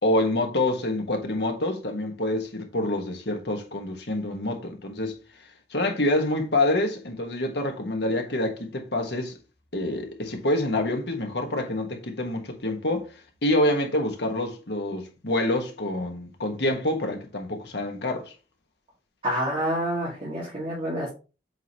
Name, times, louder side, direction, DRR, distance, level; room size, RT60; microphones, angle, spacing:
voice 1, 0.0-5.1 5.7-9.4 9.7-13.1 13.4-18.3, left 1 dB, 70° left, 1.5 m, -26 dB
voice 2, 19.2-21.1, equal, 30° right, 2.1 m, -28 dB
8.0 x 3.9 x 3.0 m
head